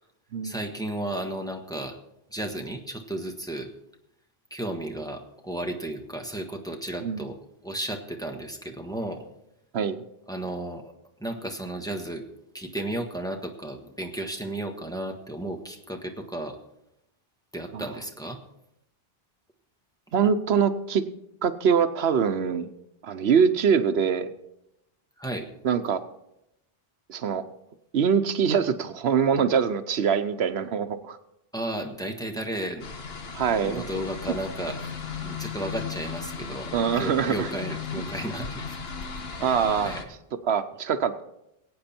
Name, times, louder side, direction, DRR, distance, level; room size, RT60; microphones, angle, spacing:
voice 1, 0.4-2.0 2.3-3.7 4.5-7.4 7.6-9.2 10.3-10.9 11.2-12.2 12.5-16.6 17.5-18.4 25.2-25.5 31.5-32.8 33.5-34.9 35.2-38.8 39.3-39.4 39.8-40.1, right 1 dB, 5° left, 2 dB, 1.5 m, -33 dB
voice 2, 20.1-21.0 21.4-22.7 23.0-24.3 25.6-26.0 27.1-27.4 27.9-31.2 33.3-33.8 36.7-37.5 39.4-39.9 40.5-41.2, right 7 dB, 85° right, 10 dB, 1.1 m, -23 dB
sound 1, 32.8-40.0, left 5 dB, 75° left, 1.4 m, -36 dB
21.5 x 8.8 x 4.4 m, 0.82 s
omnidirectional pair, 1.0 m